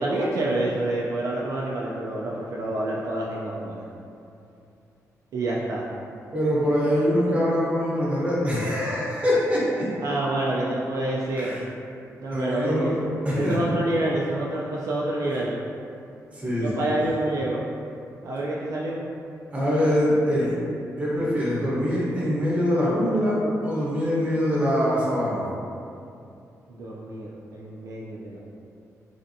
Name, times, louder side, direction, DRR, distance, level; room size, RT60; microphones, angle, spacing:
voice 1, 0.0-3.9 5.3-5.9 10.0-11.6 12.2-12.9 13.3-15.6 16.5-17.7 18.2-19.0 26.7-28.4, right 1 dB, 65° right, -5 dB, 0.3 m, -27 dB
voice 2, 6.3-9.9 11.4-11.6 12.3-13.6 15.3-15.4 16.3-16.9 19.5-20.5 21.0-25.4, equal, 20° right, -7 dB, 0.9 m, -24 dB
3.2 x 2.6 x 2.6 m, 2.6 s
cardioid pair, 130°, 6 cm